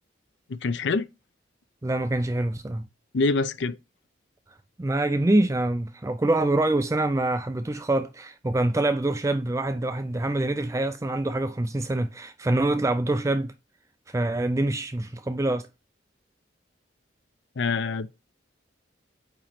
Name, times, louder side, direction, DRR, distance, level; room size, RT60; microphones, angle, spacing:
voice 1, 0.5-1.1 3.1-3.8 17.6-18.1, left 3 dB, 65° left, 0.5 m, -25 dB
voice 2, 1.8-2.8 4.8-13.5 14.1-15.7, right 2 dB, 15° right, 0.4 m, -25 dB
8.8 x 3.1 x 4.3 m
head